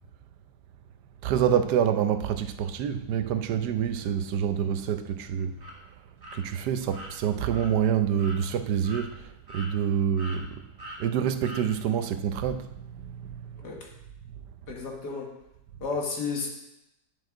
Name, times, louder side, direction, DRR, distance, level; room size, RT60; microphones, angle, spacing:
voice 1, 1.2-5.6 6.3-10.6 11.0-13.7, right 8 dB, 85° right, 1.2 m, -27 dB
sound 1, 5.6-5.7 6.2-6.4 6.9-7.1 7.5-7.7 8.2-8.4 8.8-9.0 9.5-9.9 10.2-10.4 10.8-11.0 11.4-11.6, equal, 35° right, 1.8 m, -42 dB
voice 2, 14.7-15.3 15.8-16.5, left 4 dB, 85° left, 2.2 m, -32 dB
10.5 x 6.7 x 3.8 m
omnidirectional pair, 1.7 m